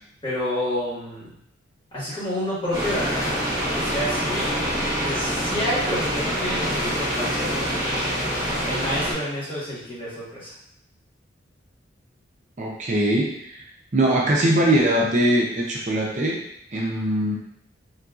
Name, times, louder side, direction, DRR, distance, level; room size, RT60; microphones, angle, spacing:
voice 1, 0.2-1.3 1.9-4.5 5.0-8.1 8.6-10.5, equal, 25° left, -9 dB, 1.4 m, -29 dB
sound 1, 2.7-9.1, equal, 20° right, 1.0 m, -25 dB
voice 2, 12.6-13.6 13.9-16.4 16.7-17.4, right 1 dB, 40° right, -3 dB, 0.5 m, -21 dB
3.8 x 2.5 x 2.4 m, 0.73 s
head